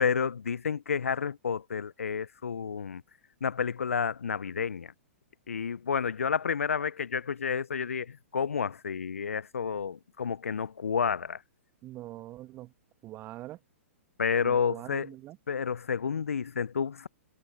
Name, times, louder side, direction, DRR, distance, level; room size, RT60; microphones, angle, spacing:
voice 1, 0.0-3.0 3.4-4.9 5.5-11.4 14.2-15.1 15.5-17.1, left 6 dB, 80° left, 0.5 m, -30 dB
voice 2, 11.8-12.7 13.0-13.6 14.4-15.4, right 15 dB, 30° right, 1.5 m, -43 dB
hypercardioid pair, 120°, 7 cm